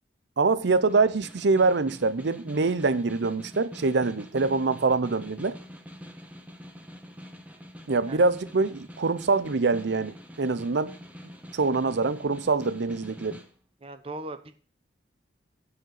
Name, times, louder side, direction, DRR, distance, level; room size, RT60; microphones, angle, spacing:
voice 1, 0.4-5.6 7.9-11.0 11.5-13.4, right 3 dB, 70° right, 0.6 m, -24 dB
Snare drum, 0.7-13.5, equal, 10° right, 1.1 m, -45 dB
voice 2, 13.8-14.6, right 2 dB, 35° right, 0.7 m, -38 dB
9.0 x 5.1 x 7.5 m
head